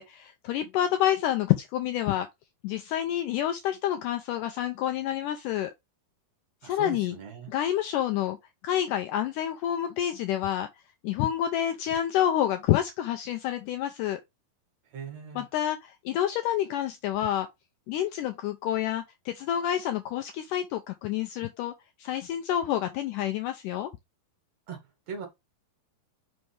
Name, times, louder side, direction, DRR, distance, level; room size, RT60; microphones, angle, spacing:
voice 1, 0.0-2.3 2.6-5.7 6.6-7.2 7.5-8.4 8.6-10.7 11.0-14.2 15.4-17.5 17.9-21.7 22.0-23.9, left 11 dB, 85° left, 1.9 m, -28 dB
voice 2, 6.6-7.5 14.9-15.4 24.7-24.8 25.1-25.3, right 6 dB, 55° right, 2.4 m, -39 dB
5.8 x 5.3 x 3.2 m
omnidirectional pair, 4.3 m